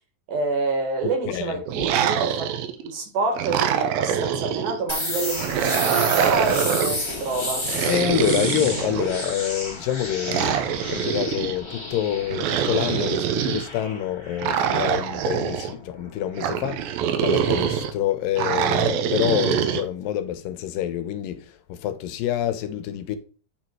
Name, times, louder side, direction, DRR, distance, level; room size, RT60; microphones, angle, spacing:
voice 1, 0.3-2.5 2.8-7.7, right 3 dB, 65° right, 3.1 m, -27 dB
voice 2, 1.3-1.6 7.9-16.9 17.2-23.2, left 11 dB, 85° left, 2.3 m, -27 dB
sound 1, 1.7-2.9 3.4-4.8 5.4-7.0 7.6-9.3 10.2-11.6 12.3-13.7 14.4-15.7 16.4-17.9 18.4-19.8, right 9 dB, 90° right, 2.6 m, -24 dB
sound 2, 4.9-16.5, left 2 dB, 20° left, 0.6 m, -32 dB
8.9 x 4.0 x 4.5 m
omnidirectional pair, 4.0 m